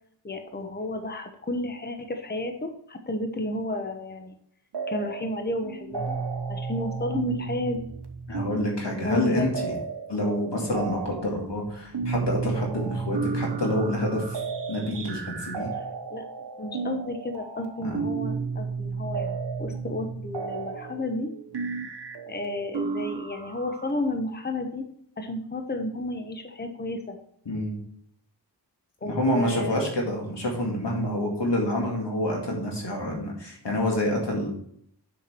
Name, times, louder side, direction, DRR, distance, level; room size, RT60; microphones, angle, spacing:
voice 1, 0.2-4.3 4.9-6.2 6.5-7.9 9.0-9.5 15.8-15.9 16.1-16.2 16.6-21.3 22.3-24.8 25.2-27.2 29.0-29.9, left 2 dB, 25° left, 5 dB, 1.0 m, -32 dB
sound 1, 4.7-5.4 5.6-23.9, right 5 dB, 75° right, 1.0 m, -33 dB
voice 2, 8.3-9.7 10.1-14.4 14.7-15.7 17.8-18.0 27.5-27.7 29.1-34.5, left 1 dB, 85° left, -1 dB, 2.2 m, -27 dB
7.3 x 5.9 x 4.4 m, 0.68 s
wide cardioid pair, 55°, 41 cm